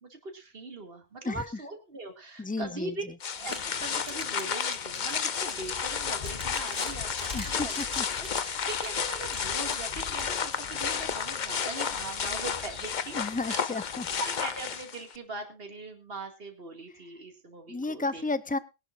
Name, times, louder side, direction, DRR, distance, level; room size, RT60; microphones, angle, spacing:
voice 1, 0.0-3.0 3.3-7.8 8.2-13.2 13.4-13.6 14.2-18.2, right 3 dB, 55° right, 4 dB, 2.5 m, -41 dB
voice 2, 2.4-3.1 7.3-8.1 13.1-14.1 17.7-18.6, left 3 dB, 10° left, 15 dB, 0.4 m, -33 dB
sound 1, 3.2-15.2, left 7 dB, 45° left, 0.8 m, -32 dB
sound 2, 3.5-12.0, equal, 5° right, 4.7 m, -45 dB
21.5 x 11.0 x 2.5 m, 0.27 s
omnidirectional pair, 1.2 m